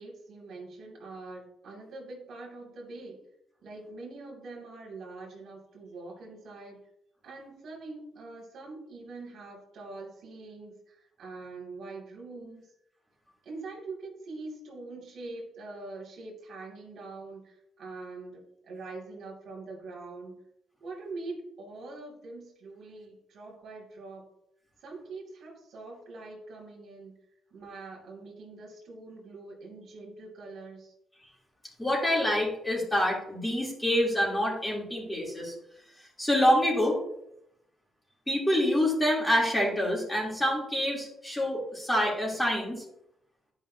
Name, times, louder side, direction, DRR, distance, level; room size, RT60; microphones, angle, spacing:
voice 1, 0.0-3.2 3.6-6.8 7.2-12.7 13.4-20.4 20.8-24.3 24.8-27.1 27.5-30.9, right 3 dB, 65° right, -2 dB, 2.6 m, -44 dB
voice 2, 31.8-35.5 36.2-37.0 38.3-42.8, equal, 10° left, -4 dB, 3.2 m, -26 dB
11.0 x 5.5 x 2.8 m, 0.77 s
cardioid pair, 90°, 0 cm